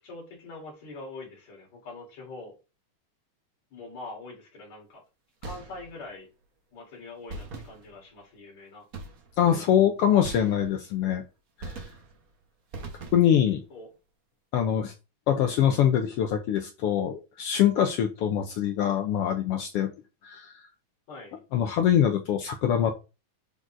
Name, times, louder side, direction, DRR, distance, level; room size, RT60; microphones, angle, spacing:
voice 1, 0.0-2.5 3.7-5.0 5.4-6.3 6.7-8.8 13.7-13.9 21.1-21.4, left 2 dB, 65° left, -1 dB, 4.2 m, -43 dB
sound 1, 5.4-6.1 7.3-8.2 8.9-9.5 10.2-11.0 11.6-12.3 12.7-13.5, right 3 dB, 85° right, 0.7 m, -41 dB
voice 2, 9.4-11.2 11.6-11.8 13.1-13.6 14.5-14.9 15.3-19.9 20.2-20.7 21.5-22.9, left 9 dB, 85° left, 6 dB, 1.3 m, -24 dB
10.5 x 4.1 x 2.5 m, 0.29 s
omnidirectional pair, 3.4 m